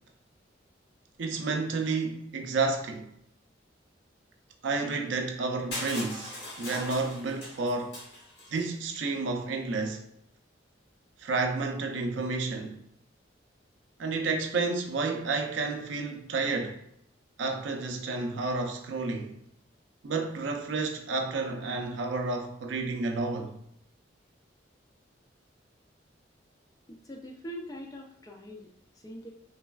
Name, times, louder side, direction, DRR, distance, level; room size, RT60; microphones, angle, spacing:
voice 1, 1.2-3.1 4.6-8.0 8.5-10.0 11.2-12.8 14.0-16.8 17.4-19.4 20.0-23.6, right 3 dB, 75° right, 0.4 m, -31 dB
Crushing, 5.7-8.6, left 1 dB, 65° left, 1.3 m, -40 dB
voice 2, 26.9-28.7 29.0-29.3, equal, 20° left, 0.3 m, -42 dB
3.2 x 2.3 x 2.2 m
head